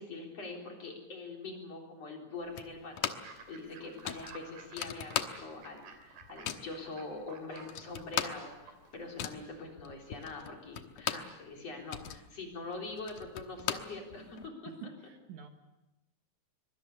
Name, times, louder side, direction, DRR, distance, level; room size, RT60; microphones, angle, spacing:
voice 1, 0.0-14.9, left 3 dB, 45° left, 1 dB, 4.9 m, -44 dB
sound 1, 2.6-3.4 3.7-3.8 4.0-5.7 6.0-6.7 7.3-7.4 7.6-11.4 11.7-14.5, left 10 dB, 70° left, 2.7 m, -38 dB
Fowl / Bird, 3.0-9.2, right 4 dB, 80° right, 5.0 m, -54 dB
voice 2, 14.7-15.5, right 8 dB, 60° right, 5 dB, 2.7 m, -48 dB
24.0 x 23.5 x 6.8 m, 0.97 s
omnidirectional pair, 4.1 m